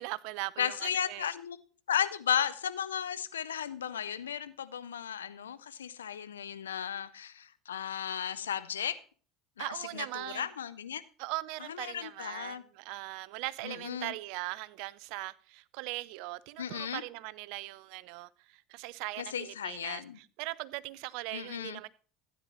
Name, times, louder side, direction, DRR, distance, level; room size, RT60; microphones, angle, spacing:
voice 1, 0.0-1.3 9.6-10.5 11.2-21.9, right 20 dB, 65° right, 0.5 m, -40 dB
voice 2, 0.6-1.6 1.9-9.0 9.6-11.0 11.7-12.6 13.6-14.1 16.6-17.0 19.2-20.2 21.3-21.8, left 9 dB, 90° left, 0.5 m, -35 dB
13.0 x 9.6 x 3.0 m
hypercardioid pair, 75°, 0 cm